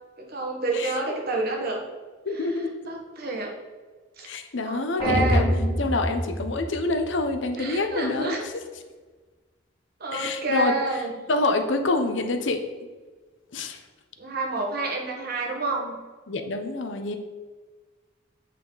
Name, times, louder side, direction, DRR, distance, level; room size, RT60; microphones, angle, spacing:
voice 1, 0.2-1.8 2.9-3.5 4.2-4.3 4.6-5.5 7.6-8.4 10.0-11.1 14.2-16.0, right 2 dB, 50° right, 0 dB, 1.4 m, -28 dB
voice 2, 2.2-2.7 4.3-5.5 5.8-8.5 10.1-10.7 11.3-12.6 13.5-13.8 16.3-17.2, left 2 dB, 65° left, 6 dB, 0.8 m, -27 dB
sound 1, 5.0-7.3, equal, 25° left, 1.8 m, -25 dB
8.0 x 5.6 x 4.0 m, 1.4 s
head